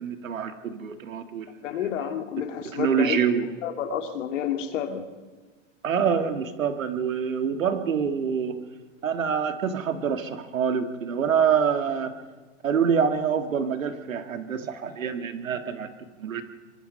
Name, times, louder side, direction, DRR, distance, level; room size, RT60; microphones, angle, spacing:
voice 1, 0.0-1.5 2.7-3.5 5.8-8.6 9.0-12.1 12.6-15.9 16.2-16.4, right 7 dB, 90° right, 8 dB, 2.0 m, -26 dB
voice 2, 1.6-3.3 3.6-5.1, left 9 dB, 70° left, 6 dB, 2.6 m, -30 dB
24.5 x 21.0 x 5.5 m, 1.4 s
hypercardioid pair, 120°, 39 cm